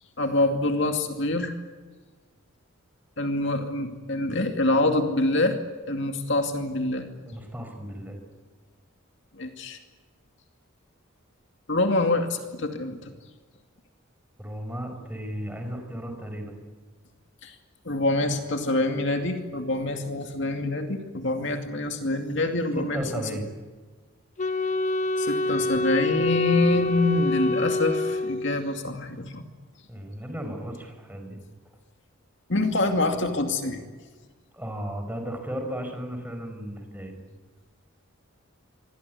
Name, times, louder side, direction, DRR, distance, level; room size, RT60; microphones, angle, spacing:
voice 1, 0.2-1.5 3.2-5.6 5.9-7.1 9.3-9.8 11.7-13.1 17.4-17.6 17.8-23.0 25.2-29.4 32.5-33.8, left 2 dB, 55° left, 5 dB, 2.5 m, -26 dB
voice 2, 7.3-8.2 14.4-16.6 22.8-23.5 29.9-31.4 34.5-37.2, equal, 10° right, 4 dB, 5.1 m, -35 dB
Wind instrument woodwind instrument, 24.4-28.8, left 3 dB, 35° left, 1.0 m, -26 dB
26.5 x 22.5 x 9.5 m, 1.4 s
head